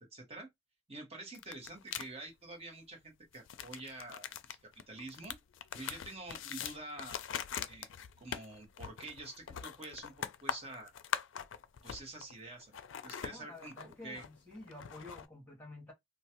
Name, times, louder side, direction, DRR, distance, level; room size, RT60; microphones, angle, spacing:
voice 1, 0.1-0.5 0.9-4.6 4.9-5.4 5.7-7.2 7.7-7.9 8.2-10.9 11.8-14.2, right 2 dB, 30° right, 1.2 m, -47 dB
sound 1, 1.3-2.1 3.3-12.4 12.6-15.3, left 8 dB, 80° left, 0.4 m, -42 dB
voice 2, 13.3-15.9, left 2 dB, 10° left, 1.6 m, -50 dB
3.0 x 2.2 x 2.9 m
head